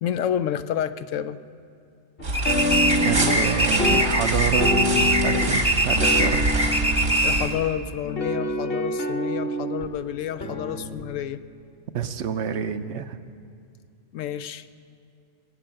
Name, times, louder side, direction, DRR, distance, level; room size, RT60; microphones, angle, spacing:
voice 1, 0.0-1.4 7.2-11.4 14.1-14.7, left 10 dB, 75° left, 12 dB, 0.9 m, -29 dB
sound 1, 2.2-3.5 3.8-5.6 5.9-7.6 8.0-9.9 10.4-11.0, left 2 dB, 50° left, 1.6 m, -27 dB
sound 2, 2.2-7.5, right 2 dB, 90° right, 2.6 m, -27 dB
sound 3, 2.3-7.6, right 1 dB, 5° right, 0.5 m, -23 dB
voice 2, 3.0-6.5 11.9-13.2, right 8 dB, 65° right, 10 dB, 0.9 m, -28 dB
20.0 x 7.6 x 9.0 m, 2.4 s
omnidirectional pair, 1.3 m